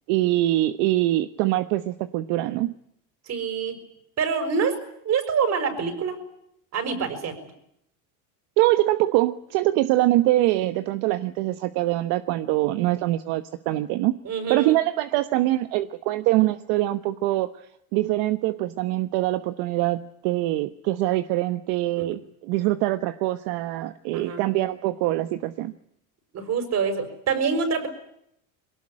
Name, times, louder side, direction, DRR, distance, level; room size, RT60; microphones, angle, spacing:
voice 1, 0.1-2.7 8.6-14.1 14.5-17.5 17.9-25.7, right 16 dB, 70° right, 11 dB, 1.2 m, -23 dB
voice 2, 3.3-3.8 4.2-6.2 6.7-7.4 14.2-14.8 21.9-22.1 24.1-24.4 26.3-27.9, right 6 dB, 40° right, 9 dB, 6.3 m, -26 dB
22.5 x 19.0 x 10.0 m, 0.74 s
cardioid pair, 130°, 41 cm